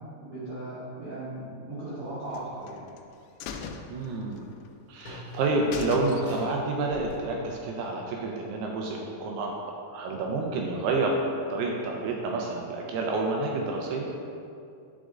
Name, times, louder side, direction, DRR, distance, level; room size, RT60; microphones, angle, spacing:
voice 1, 0.1-2.9 10.1-10.4, right 1 dB, 65° right, -11 dB, 1.4 m, -38 dB
sound 1, 2.3-3.0 3.4-4.7 5.0-5.1 5.4-5.5 5.7-6.6 7.0-7.1, left 6 dB, 80° left, 2.5 m, -39 dB
sound 2, 3.8-8.3 8.6-8.7 9.1-9.2, left 1 dB, 45° left, 1.7 m, -45 dB
voice 2, 3.9-4.5 4.9-14.1, right 2 dB, 80° right, 0 dB, 2.4 m, -29 dB
10.0 x 4.9 x 3.8 m, 2.4 s
omnidirectional pair, 5.2 m